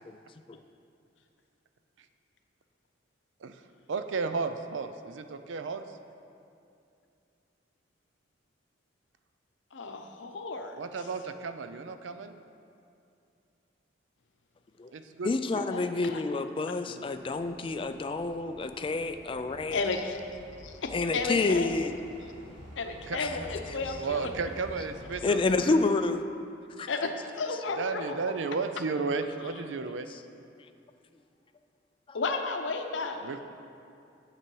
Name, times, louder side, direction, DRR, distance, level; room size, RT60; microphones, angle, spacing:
voice 1, 3.9-5.9 10.8-12.4 14.9-15.3 16.9-17.0 23.1-23.2 23.9-25.8 27.8-30.1 33.2-33.4, right 4 dB, 80° right, 9 dB, 0.5 m, -33 dB
voice 2, 9.7-10.8 15.7-16.2 19.7-20.2 20.6-21.7 22.8-24.3 26.9-27.1 27.4-28.2 32.1-33.3, left 4 dB, 80° left, 5 dB, 0.7 m, -33 dB
voice 3, 15.2-19.8 20.9-22.0 23.2-23.4 23.6-24.0 25.2-26.2 26.8-26.9 27.5-27.6 30.1-30.2 32.1-32.2 33.2-33.3, left 3 dB, 30° left, 9 dB, 0.3 m, -29 dB
sound 1, 17.1-25.2, equal, 65° right, 2.1 m, -48 dB
8.8 x 6.9 x 4.6 m, 2.6 s
head